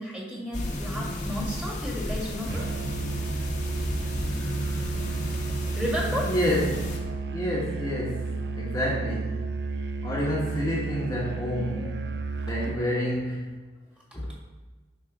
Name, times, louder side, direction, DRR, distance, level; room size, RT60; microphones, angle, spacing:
voice 1, 0.0-2.7 5.8-6.3 12.4-12.5, equal, 5° right, -3 dB, 1.9 m, -32 dB
sound 1, 0.5-7.0, left 1 dB, 40° left, 1.3 m, -33 dB
Musical instrument, 2.5-12.9, right 3 dB, 60° right, 0.5 m, -32 dB
voice 2, 6.2-6.7 7.3-9.4 10.0-12.1 12.5-13.5 14.1-14.3, equal, 20° left, -6 dB, 1.4 m, -29 dB
9.7 x 4.2 x 6.1 m, 1.3 s
head